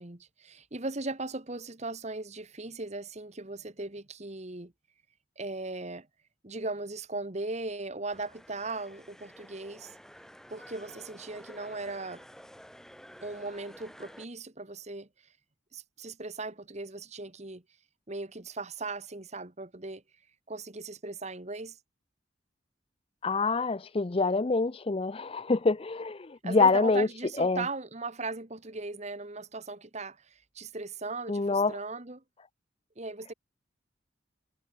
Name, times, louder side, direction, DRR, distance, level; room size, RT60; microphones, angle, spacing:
voice 1, 0.0-4.7 5.4-6.1 6.4-9.9 10.5-12.2 13.2-15.1 15.7-17.6 18.1-20.0 20.5-21.8 26.4-32.2 33.0-33.3, right 3 dB, 35° right, 1.6 m, -38 dB
sound 1, 8.1-14.2, equal, 5° left, 6.2 m, -51 dB
voice 2, 23.2-27.1 27.4-27.7 31.3-31.8, left 3 dB, 30° left, 0.5 m, -26 dB
head